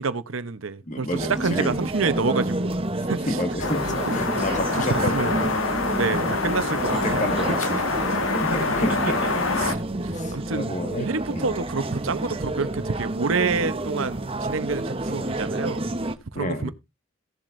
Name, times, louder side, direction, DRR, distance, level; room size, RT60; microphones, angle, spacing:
voice 1, 0.0-3.4 4.1-4.2 4.7-5.4 5.9-7.3 8.5-8.8 9.6-9.8 10.0-10.7 11.0-15.8 16.3-16.7, right 4 dB, 85° right, 0.9 m, -28 dB
voice 2, 0.9-1.9 3.3-5.6 6.1-6.3 7.0-7.8 8.3-9.8 10.1-11.5 16.3-16.7, left 1 dB, 40° left, 1.7 m, -30 dB
sound 1, 1.1-16.1, right 2 dB, 30° right, 0.9 m, -29 dB
sound 2, 3.6-9.7, left 3 dB, 80° left, 1.6 m, -26 dB
17.5 x 7.5 x 2.6 m
head